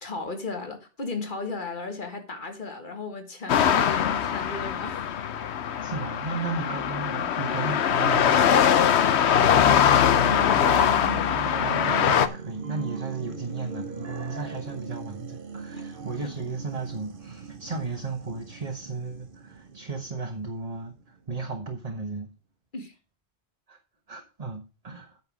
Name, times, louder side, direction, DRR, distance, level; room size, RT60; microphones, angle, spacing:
voice 1, 0.0-5.1 5.4-5.6 10.0-11.1 22.7-22.9, left 3 dB, 50° left, 1.9 m, -35 dB
sound 1, 3.5-12.3, left 9 dB, 80° left, 1.0 m, -22 dB
voice 2, 5.8-8.6 9.3-9.7 11.5-22.3 23.7-23.8 24.1-25.2, right 4 dB, 35° right, 1.3 m, -35 dB
sound 2, 10.2-21.2 21.6-21.7, right 5 dB, 55° right, 1.2 m, -39 dB
9.1 x 5.7 x 6.1 m
omnidirectional pair, 1.1 m